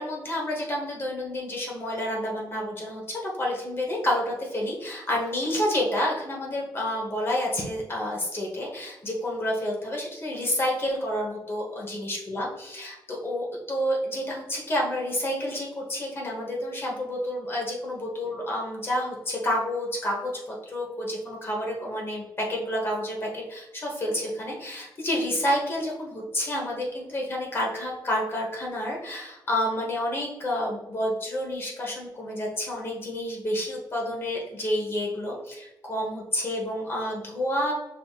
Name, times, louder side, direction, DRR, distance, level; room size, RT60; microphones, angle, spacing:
voice 1, 0.0-37.7, left 1 dB, 30° left, -2 dB, 1.1 m, -29 dB
4.9 x 3.6 x 2.4 m, 0.99 s
wide cardioid pair, 165°, 8 cm